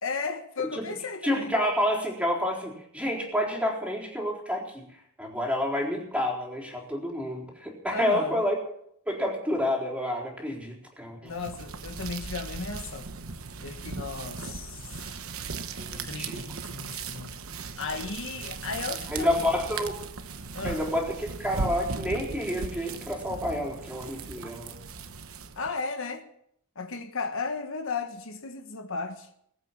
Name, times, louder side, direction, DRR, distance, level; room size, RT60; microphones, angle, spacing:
voice 1, 0.0-1.5 7.9-8.4 11.2-13.1 13.6-15.2 15.9-17.3 17.8-19.4 20.5-20.8 25.6-26.2 26.7-29.3, left 4 dB, 65° left, 1.4 m, -35 dB
voice 2, 1.2-4.9 5.2-8.5 9.1-11.3 15.8-16.4 19.1-20.0 20.6-24.8, left 1 dB, 5° right, 4.1 m, -29 dB
sound 1, 11.3-25.7, right 4 dB, 70° right, 1.1 m, -38 dB
21.0 x 8.4 x 7.4 m
head